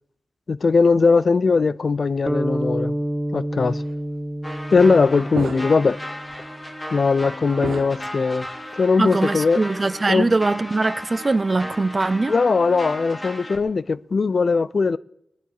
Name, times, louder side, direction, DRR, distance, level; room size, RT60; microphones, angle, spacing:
voice 1, 0.5-2.9 3.3-3.8 4.7-6.0 6.9-8.5 8.8-9.6 10.1-10.3 12.3-15.0, left 4 dB, 60° left, 0.5 m, -19 dB
sound 1, 2.3-6.5, right 1 dB, 10° right, 0.8 m, -28 dB
sound 2, 3.6-3.8 4.7-5.0 5.3-5.9 6.2-6.4 7.6-8.7, right 5 dB, 85° right, 0.8 m, -33 dB
sound 3, 4.4-13.6, left 1 dB, 30° left, 3.1 m, -35 dB
voice 2, 9.0-12.3, right 3 dB, 40° right, 0.5 m, -22 dB
21.0 x 10.5 x 4.8 m
cardioid pair, 50°, 0 cm